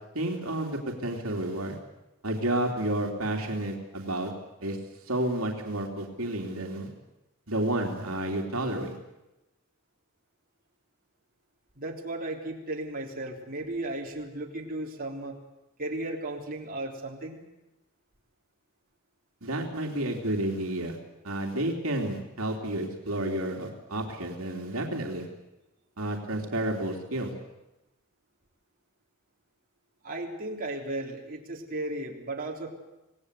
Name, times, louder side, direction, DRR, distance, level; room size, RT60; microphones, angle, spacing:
voice 1, 0.1-1.8 2.2-4.3 4.6-4.8 5.0-6.9 7.5-8.9 19.4-21.0 21.2-25.3 26.0-27.3, right 1 dB, 80° right, 1 dB, 3.0 m, -30 dB
voice 2, 11.8-15.4 15.8-17.4 30.0-32.7, right 2 dB, 45° right, -1 dB, 3.6 m, -35 dB
26.5 x 18.5 x 8.2 m, 0.96 s
head